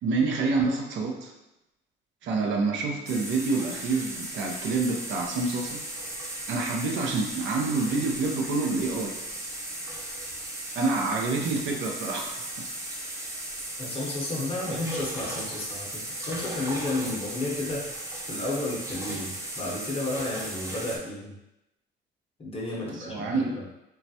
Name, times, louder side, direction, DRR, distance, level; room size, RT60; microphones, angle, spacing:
voice 1, 0.0-1.3 2.2-5.8 6.5-9.2 10.8-12.7 14.7-15.0 22.8-23.6, right 3 dB, 70° right, 1 dB, 0.5 m, -28 dB
sound 1, 3.1-21.0, right 1 dB, 15° right, 0.4 m, -36 dB
voice 2, 13.8-21.3 22.4-23.7, left 2 dB, 30° left, -3 dB, 0.7 m, -32 dB
3.1 x 2.3 x 2.7 m, 0.91 s
cardioid pair, 150°, 20 cm